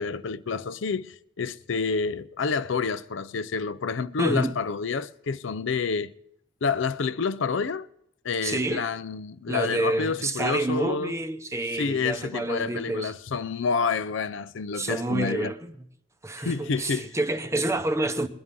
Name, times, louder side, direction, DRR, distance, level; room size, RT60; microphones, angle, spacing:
voice 1, 0.0-6.1 6.6-7.9 8.2-11.1 11.7-15.5 16.4-17.1, left 5 dB, 65° left, 0.5 m, -28 dB
voice 2, 4.2-4.5 8.4-8.9 9.5-13.1 14.7-15.9 16.2-18.3, right 2 dB, 15° right, 0.7 m, -28 dB
22.0 x 11.0 x 3.7 m
head